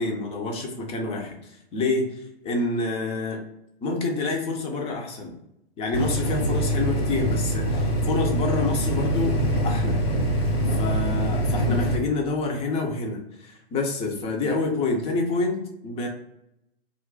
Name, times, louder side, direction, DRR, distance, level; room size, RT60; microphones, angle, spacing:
voice 1, 0.0-3.4 3.8-5.3 5.8-9.4 9.6-10.0 10.7-16.1, left 3 dB, 20° left, 2 dB, 0.5 m, -27 dB
sound 1, 5.9-12.0, equal, 85° left, 0.7 m, -24 dB
2.4 x 2.2 x 3.7 m, 0.83 s
figure-of-eight pair, 110°, 29 cm